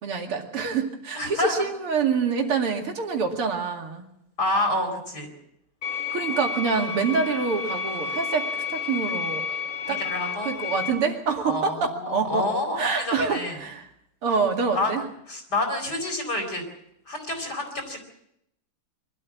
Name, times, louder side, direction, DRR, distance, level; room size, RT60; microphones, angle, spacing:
voice 1, 0.0-4.0 6.1-9.6 9.9-10.0 10.4-12.5 12.8-13.9 14.2-15.0, right 5 dB, 85° right, 3 dB, 3.2 m, -26 dB
voice 2, 1.2-1.5 4.4-5.3 9.8-10.5 11.4-13.6 14.7-14.9 15.3-16.6 17.1-18.0, left 2 dB, 45° left, 3 dB, 4.9 m, -28 dB
sound 1, 5.8-10.9, left 5 dB, 80° left, 5.2 m, -31 dB
24.0 x 13.0 x 8.4 m, 0.77 s
omnidirectional pair, 2.4 m